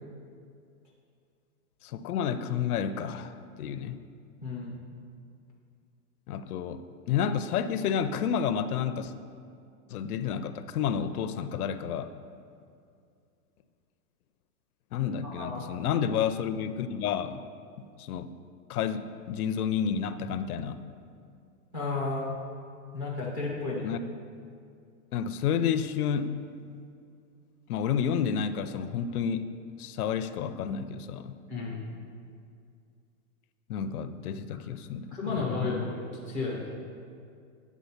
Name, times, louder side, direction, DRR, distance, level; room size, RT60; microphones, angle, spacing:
voice 1, 1.8-3.3 3.6-4.0 6.3-9.1 9.9-12.1 14.9-17.4 17.8-18.3 18.7-20.8 23.8-24.0 25.1-26.3 27.7-31.4 33.7-35.9, left 7 dB, 80° left, 12 dB, 0.6 m, -30 dB
voice 2, 4.4-4.8 15.2-15.8 21.7-22.3 22.9-23.9 31.5-31.8 35.1-36.7, left 3 dB, 10° right, -5 dB, 0.5 m, -33 dB
8.3 x 3.7 x 5.6 m, 2.4 s
supercardioid pair, 165°, 44 cm